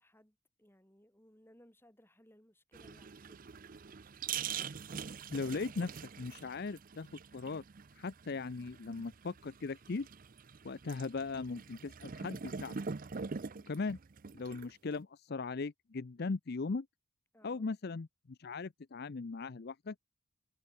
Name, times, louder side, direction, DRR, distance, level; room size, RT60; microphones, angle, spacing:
voice 1, 0.0-3.4 17.3-17.7, equal, 10° left, 7.0 m, -63 dB
sound 1, 2.7-15.0, right 6 dB, 40° right, 0.5 m, -44 dB
voice 2, 5.3-7.1 7.3-7.6 8.0-10.1 10.6-12.7 13.7-14.0 14.3-16.9 17.4-19.9, left 4 dB, 45° left, 0.5 m, -39 dB
head